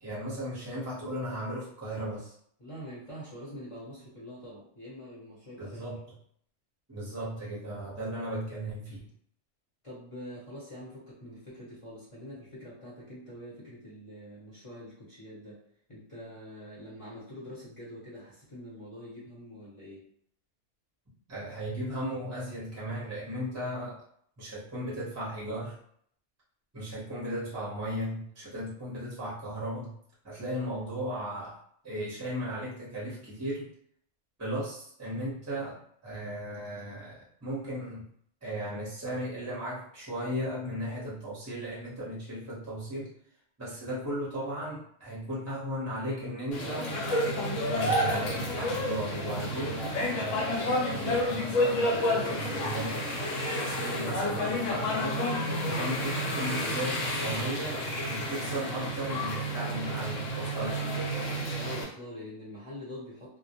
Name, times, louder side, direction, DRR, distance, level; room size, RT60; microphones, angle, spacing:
voice 1, 0.0-2.3 5.6-6.0 6.9-9.0 21.3-24.0 24.4-25.7 26.7-29.9 30.2-31.6 31.8-33.7 34.4-35.8 36.0-38.0 38.4-43.1 43.6-46.9 47.6-53.0 53.6-55.2 55.6-61.3, equal, 15° right, -7 dB, 0.6 m, -36 dB
voice 2, 2.6-5.8 9.8-15.6 15.9-20.0 61.5-63.4, equal, 30° left, -8 dB, 0.8 m, -45 dB
sound 1, 46.5-61.8, left 1 dB, 75° left, 1.0 m, -30 dB
2.2 x 2.1 x 2.8 m, 0.65 s
omnidirectional pair, 1.3 m